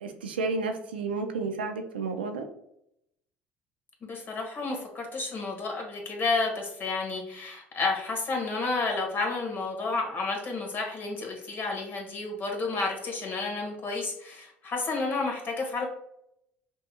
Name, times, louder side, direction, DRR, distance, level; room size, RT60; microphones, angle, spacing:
voice 1, 0.0-2.5, right 4 dB, 90° right, 5 dB, 0.5 m, -31 dB
voice 2, 4.0-15.8, left 3 dB, 45° left, 1 dB, 1.4 m, -31 dB
5.4 x 2.8 x 2.2 m, 0.76 s
hypercardioid pair, 60°, 5 cm